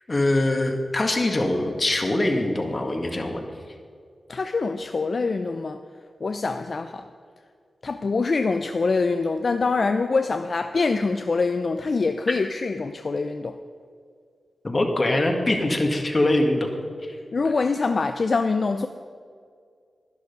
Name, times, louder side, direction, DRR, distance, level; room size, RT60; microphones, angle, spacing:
voice 1, 0.1-3.5 14.6-16.7 17.1-17.2, left 1 dB, 40° left, 3 dB, 1.9 m, -23 dB
voice 2, 4.3-5.8 6.2-7.0 7.8-13.5 17.3-18.9, left 4 dB, 60° left, 8 dB, 0.5 m, -24 dB
11.5 x 11.0 x 5.4 m, 2.1 s
cardioid pair, 55°, 0 cm